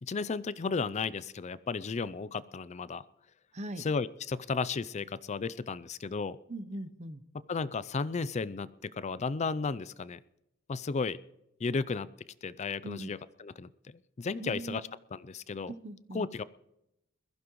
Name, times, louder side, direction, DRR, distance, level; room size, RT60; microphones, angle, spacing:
voice 1, 0.0-3.0 3.8-6.4 7.5-10.2 10.7-11.2 11.6-12.1 12.4-14.8 15.1-15.7 16.1-16.4, left 4 dB, 35° left, 17 dB, 0.4 m, -34 dB
voice 2, 3.5-3.8 6.5-7.2 12.8-13.1 14.4-14.8 15.7-16.3, right 1 dB, 35° right, 12 dB, 0.8 m, -40 dB
22.0 x 15.0 x 3.1 m, 0.84 s
head